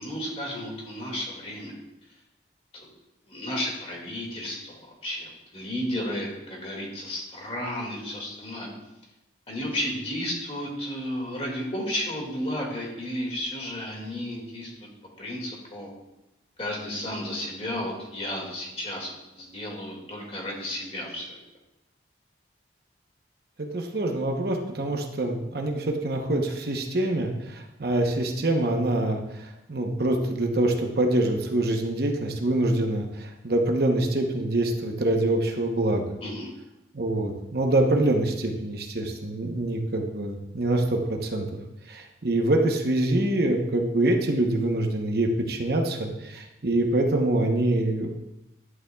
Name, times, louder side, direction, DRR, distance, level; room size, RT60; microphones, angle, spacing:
voice 1, 0.0-1.7 2.7-2.9 3.3-8.7 9.5-14.7 15.2-15.9 16.6-21.4 36.2-36.5, left 1 dB, 35° left, -1 dB, 2.1 m, -33 dB
voice 2, 23.6-36.2 36.9-41.5 41.9-48.1, right 1 dB, 55° right, 2 dB, 0.9 m, -25 dB
11.0 x 9.6 x 2.3 m, 0.93 s
head